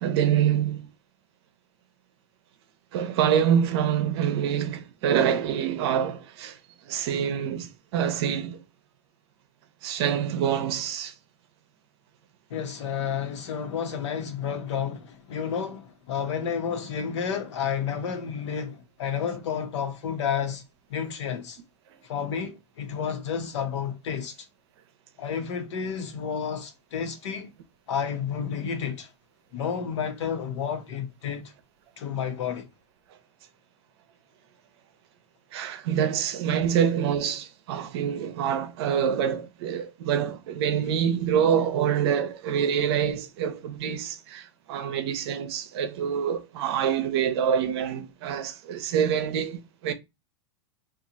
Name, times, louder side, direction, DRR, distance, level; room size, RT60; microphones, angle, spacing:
voice 1, 0.0-0.9 2.9-6.6 6.8-8.6 9.8-11.1 35.5-49.9, right 8 dB, 60° right, 0.7 m, -26 dB
voice 2, 12.5-20.6 20.9-21.6 22.0-24.3 25.2-27.5 27.9-29.1 29.5-31.5 32.0-32.7, left 7 dB, 75° left, 1.1 m, -31 dB
3.0 x 2.5 x 3.8 m
supercardioid pair, 135°, 15 cm